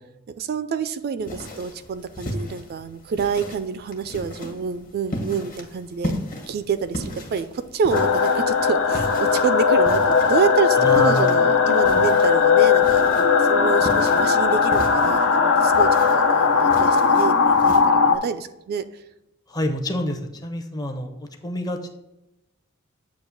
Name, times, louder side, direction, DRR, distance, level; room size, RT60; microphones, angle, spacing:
voice 1, 0.4-6.1 6.5-18.8, right 6 dB, 50° right, 11 dB, 0.3 m, -28 dB
sound 1, 1.2-17.8, equal, 40° left, 1.4 m, -36 dB
sound 2, 7.9-18.2, left 5 dB, 70° left, 0.6 m, -18 dB
voice 2, 10.8-11.3 19.5-22.0, equal, 20° left, 4 dB, 0.6 m, -27 dB
8.2 x 2.8 x 6.2 m, 0.90 s
head